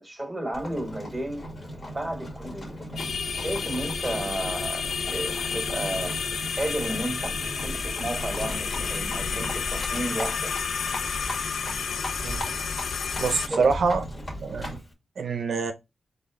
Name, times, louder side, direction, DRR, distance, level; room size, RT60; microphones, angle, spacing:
voice 1, 0.0-1.4 1.9-2.8 3.4-6.2 6.6-10.5 13.5-13.7, right 1 dB, 10° right, 1.6 m, -33 dB
Livestock farm animals working animals, 0.5-14.9, equal, 35° left, 2.0 m, -38 dB
sound 1, 3.0-13.5, left 6 dB, 75° left, 0.4 m, -31 dB
voice 2, 13.2-14.0 14.4-14.8 15.2-15.7, right 5 dB, 75° right, 0.5 m, -25 dB
4.0 x 3.5 x 3.6 m
cardioid pair, 85°, 0 cm